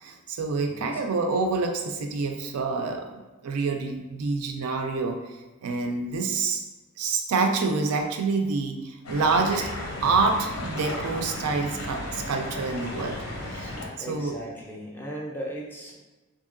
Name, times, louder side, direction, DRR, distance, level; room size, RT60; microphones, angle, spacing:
voice 1, 0.0-6.6 7.0-9.7 10.0-13.2 13.5-13.7 14.1-14.4, right 4 dB, 85° right, 5 dB, 0.4 m, -27 dB
sound 1, 9.0-13.9, left 1 dB, 90° left, 0.7 m, -34 dB
voice 2, 14.0-15.9, equal, 10° left, -2 dB, 0.4 m, -37 dB
2.7 x 2.6 x 2.5 m, 1.2 s
head